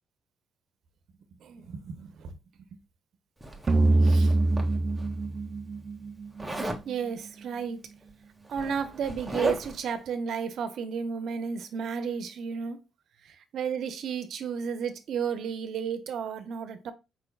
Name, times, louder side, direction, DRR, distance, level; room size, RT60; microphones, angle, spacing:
voice 1, 1.4-2.3 2.6-2.7 4.0-4.3 6.9-7.9 8.5-12.8 13.5-16.9, right 6 dB, 70° right, 0.9 m, -33 dB
Zipper (clothing), 3.4-5.1 6.4-6.9 8.0-8.1 8.4-9.9, right 1 dB, 10° right, 1.5 m, -35 dB
sound 1, 3.7-6.9, right 2 dB, 35° right, 0.4 m, -24 dB
4.9 x 4.6 x 2.2 m
cardioid pair, 90°, 0 cm